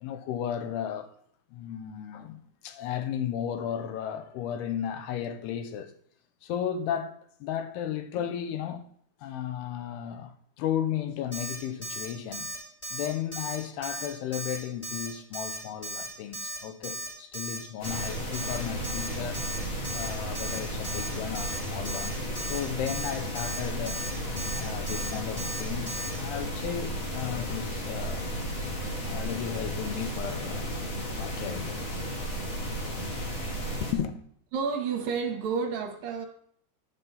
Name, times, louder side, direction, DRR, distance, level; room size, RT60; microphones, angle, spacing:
voice 1, 0.0-1.1 1.5-5.9 6.4-8.9 9.2-12.5 12.9-19.4 19.9-22.2 22.5-24.0 24.5-28.4 29.0-30.7 31.1-31.8 33.8-34.2, left 9 dB, 80° left, 2.7 m, -34 dB
Alarm, 11.3-11.6 11.8-12.1 12.3-12.6 12.8-13.1 13.3-13.6 13.8-14.1 14.3-14.6 14.8-15.1 15.3-15.6 15.8-16.1 16.3-16.6 16.8-17.1 17.3-17.6 17.8-18.1 18.3-18.6 18.8-19.1 19.3-19.6 19.8-20.1 20.3-20.6 20.8-21.1 21.3-21.6 21.8-22.1 22.4-22.6 22.9-23.1 23.4-23.6 23.9-24.1 24.4-24.6 24.9-25.1 25.4-25.6 25.9-26.1, right 1 dB, 10° left, 3.5 m, -36 dB
sound 1, 17.8-33.9, equal, 40° left, 1.9 m, -34 dB
voice 2, 34.5-36.3, right 5 dB, 70° right, 2.2 m, -30 dB
11.0 x 6.1 x 5.4 m
omnidirectional pair, 4.8 m